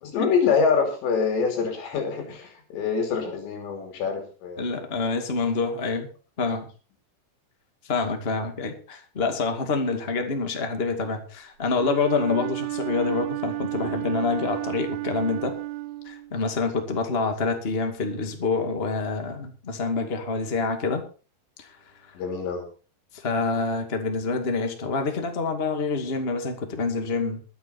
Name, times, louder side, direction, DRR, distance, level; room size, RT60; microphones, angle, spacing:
voice 1, 0.0-4.8 22.2-22.6, left 5 dB, 80° left, 4 dB, 5.0 m, -25 dB
voice 2, 4.6-6.1 6.4-6.6 7.9-15.6 16.0-21.0 21.6-21.7 23.1-27.4, left 4 dB, 25° left, 5 dB, 1.3 m, -27 dB
Wind instrument woodwind instrument, 11.7-16.5, right 17 dB, 75° right, 2.8 m, -32 dB
22.0 x 8.1 x 4.3 m, 0.36 s
omnidirectional pair, 5.0 m